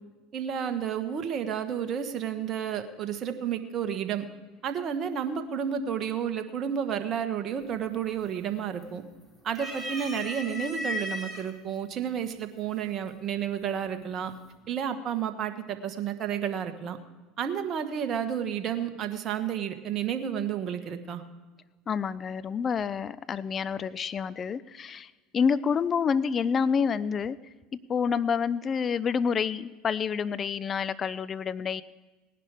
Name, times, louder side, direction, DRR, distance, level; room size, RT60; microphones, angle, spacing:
voice 1, 0.3-4.2 4.6-9.0 9.4-14.3 14.7-17.0 17.4-21.2, right 8 dB, 45° right, 7 dB, 1.5 m, -31 dB
sound 1, 7.6-8.0 8.4-9.1 9.5-11.4 12.3-12.4 13.6-14.1, left 1 dB, ahead, 5.1 m, -35 dB
voice 2, 21.9-27.4 27.9-31.8, left 6 dB, 35° left, 16 dB, 0.6 m, -28 dB
18.5 x 10.5 x 5.0 m, 1.3 s
hypercardioid pair, 80°, 0 cm